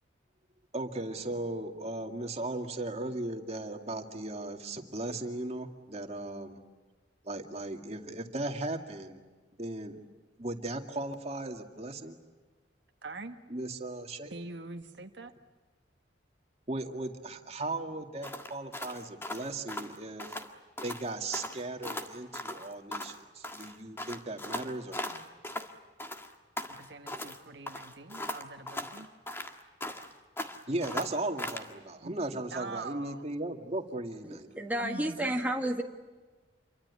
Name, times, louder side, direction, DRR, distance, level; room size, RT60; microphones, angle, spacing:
voice 1, 0.7-6.6 7.2-9.2 9.6-10.0 10.4-12.2 13.5-14.3 16.7-20.4 20.8-25.2 30.7-34.6, right 2 dB, 35° right, 5 dB, 2.3 m, -37 dB
voice 2, 13.0-13.4 14.3-15.3 26.7-29.1 32.0-33.3 34.8-35.5, right 3 dB, 65° right, 6 dB, 1.5 m, -43 dB
sound 1, 18.2-20.5 20.8-21.1 21.3-23.2 23.4-25.7 26.0-27.4 27.7-30.1 30.4-31.7, left 1 dB, 15° left, 1.7 m, -39 dB
voice 3, 34.3-35.8, right 1 dB, 10° right, 2 dB, 1.8 m, -31 dB
28.0 x 24.0 x 8.4 m, 1.4 s
head